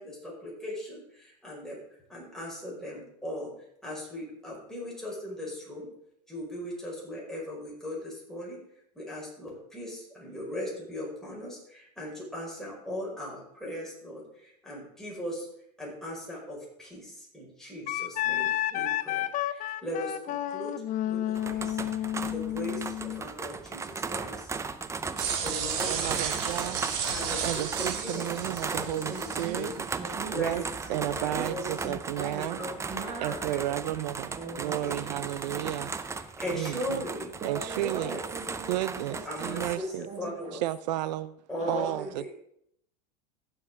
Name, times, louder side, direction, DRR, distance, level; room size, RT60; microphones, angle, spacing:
voice 1, 0.0-1.8 2.1-3.5 3.8-5.9 6.3-8.6 9.0-15.5 15.8-20.7 21.0-24.5 25.4-26.3 27.1-28.3 28.7-29.7 30.3-30.5 30.9-31.8 32.3-32.7 33.0-33.1 33.5-33.9 34.8-35.6 36.4-37.3 37.8-38.2 39.3-40.6 41.5-42.3, left 1 dB, ahead, -5 dB, 5.3 m, -39 dB
Wind instrument woodwind instrument, 17.9-23.2, left 12 dB, 40° left, 0.5 m, -31 dB
sound 1, 21.3-39.8, right 4 dB, 15° right, 0.6 m, -37 dB
sound 2, 25.2-29.6, right 7 dB, 65° right, 2.3 m, -33 dB
voice 2, 25.9-26.8 27.4-29.7 30.3-30.6 30.9-32.6 33.2-35.9 36.5-37.0 37.4-38.2 38.7-40.1 40.5-41.3 41.7-42.3, right 14 dB, 85° right, 16 dB, 0.5 m, -32 dB
voice 3, 29.1-29.6 30.0-30.7 31.3-33.4 34.3-34.9 37.4-40.6 41.6-42.0, right 3 dB, 30° right, 1 dB, 1.8 m, -41 dB
15.5 x 7.3 x 3.7 m, 0.72 s
supercardioid pair, 115°, 21 cm